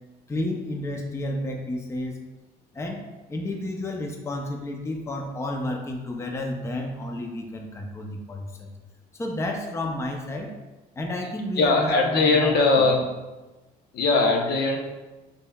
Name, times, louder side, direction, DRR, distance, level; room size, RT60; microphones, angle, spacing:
voice 1, 0.3-2.2 2.7-8.7 9.1-10.5 11.0-11.9 12.2-12.8, left 1 dB, 15° left, 2 dB, 0.5 m, -31 dB
voice 2, 11.6-13.0 13.9-14.8, left 3 dB, 70° left, 1 dB, 0.8 m, -20 dB
5.3 x 4.0 x 2.3 m, 1.2 s
cardioid pair, 110°, 17 cm